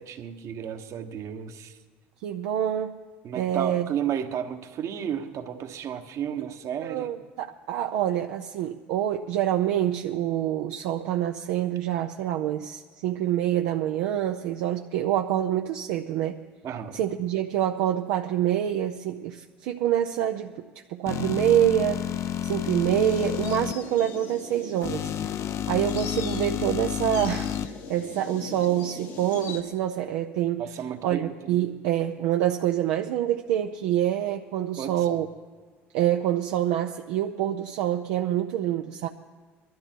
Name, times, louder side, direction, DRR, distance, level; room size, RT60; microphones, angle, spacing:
voice 1, 0.0-1.7 3.2-7.1 16.6-17.0 30.6-31.6 34.8-35.2, right 9 dB, 55° right, 7 dB, 1.3 m, -33 dB
voice 2, 2.2-3.0 3.3-3.9 6.4-6.5 6.8-16.4 16.9-25.3 25.7-30.7 31.0-35.3 35.9-39.1, right 11 dB, 75° right, 4 dB, 0.6 m, -26 dB
sound 1, 21.1-23.7 24.8-27.7, left 10 dB, 50° left, 0.6 m, -30 dB
sound 2, 22.6-29.6, left 6 dB, 70° left, 1.5 m, -40 dB
21.5 x 12.5 x 4.6 m, 1.4 s
hypercardioid pair, 70°, 6 cm